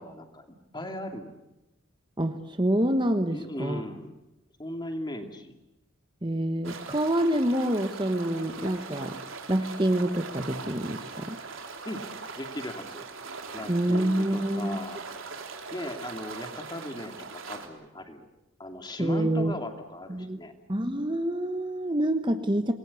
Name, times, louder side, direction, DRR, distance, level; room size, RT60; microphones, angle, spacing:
voice 1, 0.0-1.4 3.3-4.1 4.6-5.6 11.8-13.1 13.5-15.0 15.7-18.3 18.6-20.5, left 1 dB, 20° left, 5 dB, 2.7 m, -38 dB
voice 2, 2.2-3.8 6.2-9.2 9.5-11.4 13.7-14.8 19.0-19.6 20.1-20.4 20.7-22.7, right 1 dB, 20° right, 7 dB, 1.2 m, -27 dB
sound 1, 6.6-17.7, right 4 dB, 75° right, 3.4 m, -41 dB
27.0 x 21.0 x 8.4 m, 0.95 s
head